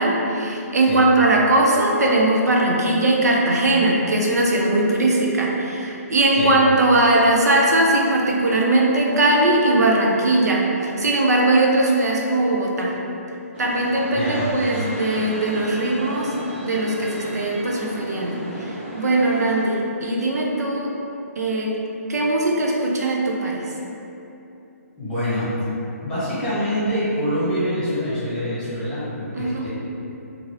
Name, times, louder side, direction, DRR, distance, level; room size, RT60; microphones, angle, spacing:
voice 1, 0.0-12.9 13.6-16.3 16.6-20.9 21.4-21.8 22.1-23.7 29.3-29.7, right 2 dB, 80° right, -2 dB, 0.6 m, -20 dB
sound 1, 13.5-19.7, equal, 40° right, 0.8 m, -33 dB
voice 2, 14.1-14.5 25.0-25.5 26.0-29.7, equal, 10° left, -12 dB, 1.1 m, -25 dB
2.9 x 2.6 x 2.9 m, 2.9 s
hypercardioid pair, 155°, 9 cm